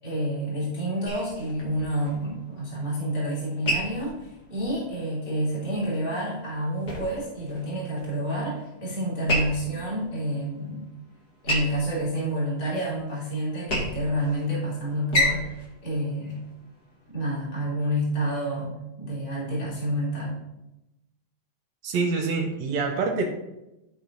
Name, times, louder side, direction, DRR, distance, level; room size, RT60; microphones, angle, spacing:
voice 1, 0.0-10.9 11.4-16.4 17.1-20.4, right 1 dB, 15° left, -7 dB, 2.8 m, -29 dB
sound 1, 1.0-17.1, left 1 dB, 35° left, 1.9 m, -33 dB
voice 2, 21.8-23.3, right 4 dB, 70° right, 2 dB, 1.9 m, -26 dB
12.0 x 4.9 x 3.9 m, 0.93 s
omnidirectional pair, 4.1 m